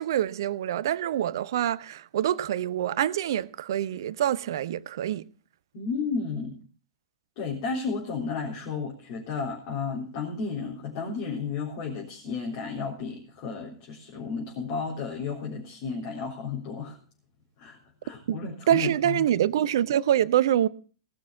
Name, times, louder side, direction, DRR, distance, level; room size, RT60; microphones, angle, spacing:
voice 1, 0.0-5.2 18.3-18.4 18.7-20.7, right 11 dB, 60° right, 0.6 m, -25 dB
voice 2, 5.7-6.6 7.4-17.0 17.6-17.8 18.0-19.3, left 5 dB, 45° left, 3.6 m, -33 dB
18.5 x 6.2 x 7.2 m
figure-of-eight pair, 100°, 3 cm